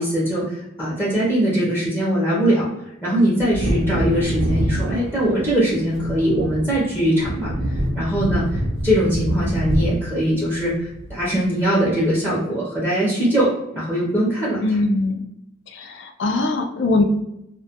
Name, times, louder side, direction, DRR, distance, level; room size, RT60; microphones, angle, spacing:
voice 1, 0.0-2.7 3.0-14.6, equal, 10° left, -8 dB, 0.5 m, -21 dB
Wind / Thunder, 3.4-11.6 11.9-12.0, right 1 dB, 55° right, 0.4 m, -26 dB
voice 2, 14.6-15.3 15.7-17.0, left 2 dB, 65° left, 5 dB, 0.3 m, -21 dB
2.2 x 2.1 x 2.7 m, 0.86 s
head